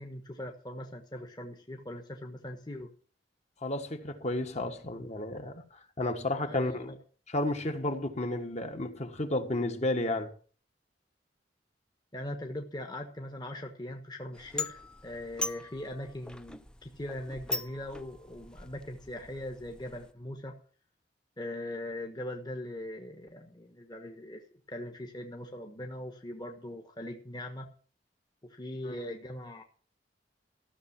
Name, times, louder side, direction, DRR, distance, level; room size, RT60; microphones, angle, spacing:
voice 1, 0.0-2.9 6.4-7.0 12.1-20.6 21.4-27.7 28.4-29.6, left 1 dB, 25° left, 1.3 m, -40 dB
voice 2, 3.6-5.6 6.0-6.9 7.3-10.3 28.8-28.9, left 1 dB, 40° left, 1.5 m, -32 dB
sound 1, 14.3-20.1, left 2 dB, 5° left, 0.6 m, -40 dB
14.0 x 6.9 x 7.2 m
head